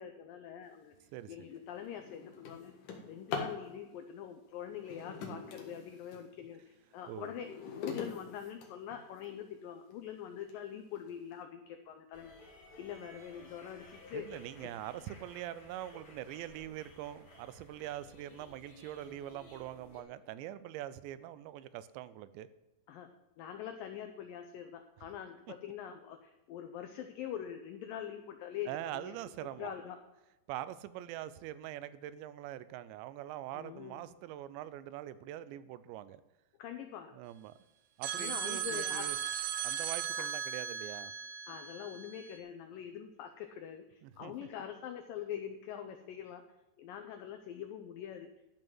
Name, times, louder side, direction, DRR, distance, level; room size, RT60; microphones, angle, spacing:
voice 1, 0.0-0.9 1.3-2.7 3.1-7.5 7.8-14.3 14.6-14.8 22.9-23.1 23.4-29.2 29.6-30.0 33.5-34.0 36.6-37.1 38.2-39.1 40.2-40.3 41.5-46.4 46.8-48.3, left 9 dB, 90° left, 7 dB, 1.9 m, -44 dB
Drawer open or close, 1.0-1.2 1.6-3.6 4.7-6.3 6.8-9.3 9.9-10.0 10.5-10.6 11.0-11.3, left 5 dB, 60° left, 2.7 m, -43 dB
sound 1, 12.1-20.0, left 1 dB, 35° left, 2.4 m, -55 dB
voice 2, 14.1-22.5 28.7-29.8 30.5-36.2 37.1-37.6 38.0-39.2 39.6-41.1 44.0-44.5, right 13 dB, 90° right, 15 dB, 2.9 m, -43 dB
sound 2, 38.0-42.4, right 8 dB, 75° right, 2.6 m, -37 dB
12.0 x 5.6 x 7.8 m, 1.0 s
omnidirectional pair, 5.0 m